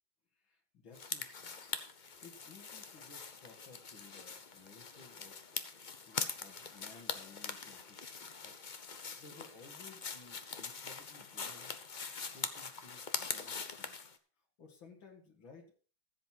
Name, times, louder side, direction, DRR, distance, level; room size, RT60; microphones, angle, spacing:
voice 1, 0.4-1.5 2.0-5.6 6.1-8.6 9.2-11.7 12.2-14.1 14.6-15.7, left 4 dB, 70° left, 2 dB, 2.9 m, -58 dB
sound 1, 0.9-14.2, left 5 dB, 55° left, 0.5 m, -43 dB
15.0 x 7.9 x 4.5 m, 0.39 s
omnidirectional pair, 2.2 m